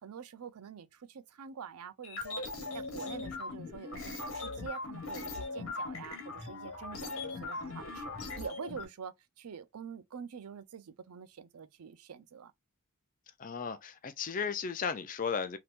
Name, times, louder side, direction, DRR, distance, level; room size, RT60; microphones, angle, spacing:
voice 1, 0.0-2.4 2.7-8.1 8.4-12.5, right 7 dB, 85° right, 0.5 m, -46 dB
sound 1, 2.0-8.8, left 3 dB, 70° left, 1.3 m, -40 dB
voice 2, 13.4-15.6, left 6 dB, 35° left, 0.4 m, -35 dB
3.4 x 2.8 x 2.4 m
head